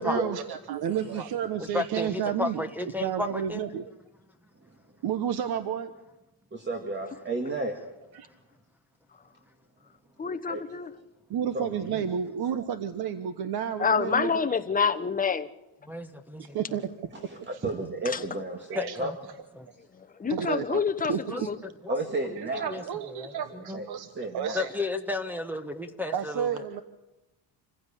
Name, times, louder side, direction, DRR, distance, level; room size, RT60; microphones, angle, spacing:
voice 1, 0.0-2.6 3.0-3.9 5.0-5.9 8.1-8.3 11.3-14.3 16.4-16.9 18.7-19.0 20.3-20.8 21.1-21.5 22.4-24.1 24.3-24.7 26.1-26.8, right 8 dB, 50° right, 1.2 m, -31 dB
voice 2, 1.6-3.6 15.9-16.6 18.7-19.2 19.6-19.7 21.3-21.9 22.5-23.8 24.5-26.6, left 2 dB, 5° right, 1.1 m, -33 dB
voice 3, 6.5-7.7 10.5-10.6 11.5-12.1 17.1-17.4 17.6-19.1 21.9-22.7 23.5-23.9 24.2-24.6, right 2 dB, 25° right, 2.0 m, -32 dB
voice 4, 10.2-10.9 13.8-15.5 18.0-18.4 19.9-21.6, left 6 dB, 15° left, 1.0 m, -27 dB
26.5 x 15.5 x 8.5 m
cardioid pair, 150°, 48 cm